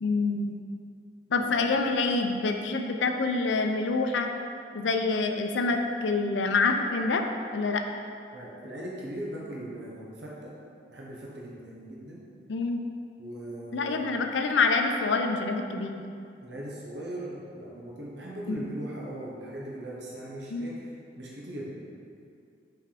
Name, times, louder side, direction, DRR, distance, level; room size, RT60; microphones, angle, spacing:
voice 1, 0.0-0.5 1.3-4.3 4.7-7.2 7.5-7.8 12.5-12.8 13.7-16.0 18.5-18.6 20.5-20.7, left 3 dB, 80° left, 5 dB, 0.5 m, -26 dB
voice 2, 8.3-10.5 10.9-12.2 13.2-14.1 16.4-21.7, right 1 dB, 70° right, -4 dB, 0.9 m, -39 dB
5.7 x 3.5 x 4.9 m, 2.3 s
head